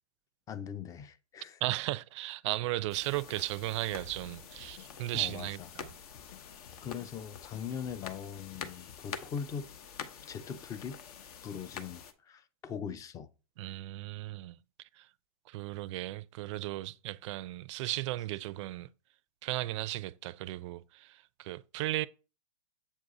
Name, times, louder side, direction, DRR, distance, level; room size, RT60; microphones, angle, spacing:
voice 1, 0.5-1.6 5.1-5.5 6.8-9.7 10.2-11.0 11.4-13.3, left 7 dB, 15° left, 0.4 m, -41 dB
voice 2, 1.6-5.9 13.6-15.1 15.5-18.9 19.4-22.1, right 17 dB, 50° right, 0.4 m, -36 dB
sound 1, 2.9-12.1, left 7 dB, 70° left, 0.9 m, -47 dB
sound 2, 3.9-9.4, left 8 dB, 45° left, 0.7 m, -55 dB
7.4 x 2.6 x 4.8 m
hypercardioid pair, 125°, 20 cm